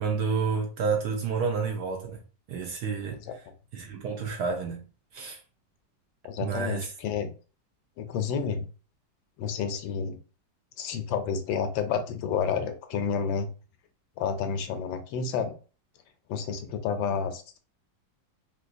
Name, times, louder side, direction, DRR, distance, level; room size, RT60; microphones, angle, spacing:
voice 1, 0.0-2.2 2.5-3.2 3.7-4.8 5.1-5.4 6.4-6.9, right 5 dB, 70° right, 1.0 m, -29 dB
voice 2, 6.2-7.3 8.0-8.7 9.4-10.2 10.8-13.5 14.2-15.5 16.3-17.6, left 6 dB, 85° left, 1.3 m, -30 dB
3.8 x 2.4 x 2.6 m
omnidirectional pair, 2.1 m